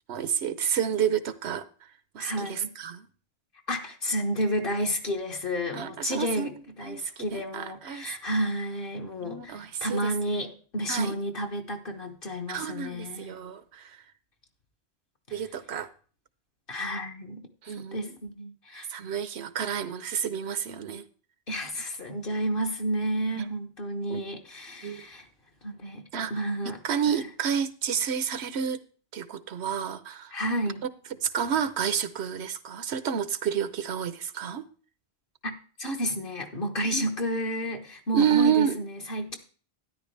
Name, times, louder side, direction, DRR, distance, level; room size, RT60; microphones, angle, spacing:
voice 1, 0.1-1.9 2.1-3.1 5.7-6.5 6.8-8.1 9.2-10.1 10.9-11.1 12.5-14.0 15.3-15.9 17.6-18.2 18.9-21.0 23.4-23.6 24.1-24.2 24.8-25.1 26.1-26.3 26.7-28.8 29.1-30.3 30.8-30.9 31.2-34.6 36.9-37.1 38.1-38.8, right 8 dB, 85° right, 1.1 m, -30 dB
voice 2, 2.2-2.7 3.7-13.3 16.7-17.4 17.9-18.9 21.5-25.3 25.6-26.0 26.3-26.8 27.1-27.2 30.3-30.8 35.4-39.4, equal, 60° left, 1.4 m, -31 dB
13.0 x 10.0 x 3.3 m
omnidirectional pair, 1.1 m